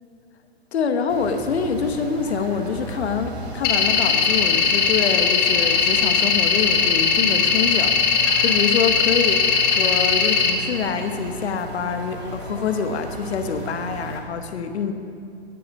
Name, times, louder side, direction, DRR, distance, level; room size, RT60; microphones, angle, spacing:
voice 1, 0.7-14.9, left 6 dB, 80° left, 7 dB, 1.2 m, -26 dB
sound 1, 1.1-14.2, right 3 dB, 75° right, 3.3 m, -35 dB
sound 2, 3.6-10.5, left 6 dB, 30° left, 1.6 m, -19 dB
16.0 x 8.5 x 5.4 m, 2.5 s
hypercardioid pair, 130°, 32 cm